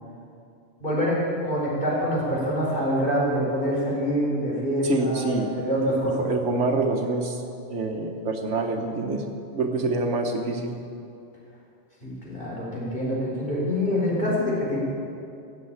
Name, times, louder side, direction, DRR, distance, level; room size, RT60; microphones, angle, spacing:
voice 1, 0.8-6.3 12.0-14.8, equal, 45° left, -6 dB, 4.7 m, -25 dB
voice 2, 4.8-5.5 6.2-7.4 7.7-9.2 9.5-10.8, right 3 dB, 75° right, 4 dB, 1.6 m, -26 dB
16.0 x 7.6 x 8.8 m, 2.6 s
omnidirectional pair, 1.2 m